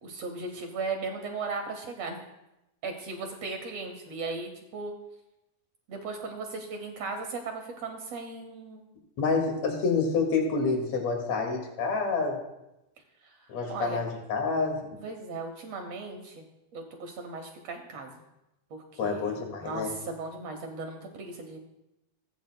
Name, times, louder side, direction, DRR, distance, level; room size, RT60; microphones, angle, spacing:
voice 1, 0.0-2.2 2.8-4.9 5.9-8.9 13.2-13.4 13.7-14.0 15.0-16.4 16.7-18.2 18.7-21.6, right 3 dB, 65° right, 3 dB, 1.7 m, -37 dB
voice 2, 9.2-12.4 13.5-14.9 19.0-19.9, left 4 dB, 55° left, 1 dB, 3.0 m, -28 dB
19.0 x 9.3 x 2.2 m, 0.92 s
omnidirectional pair, 3.9 m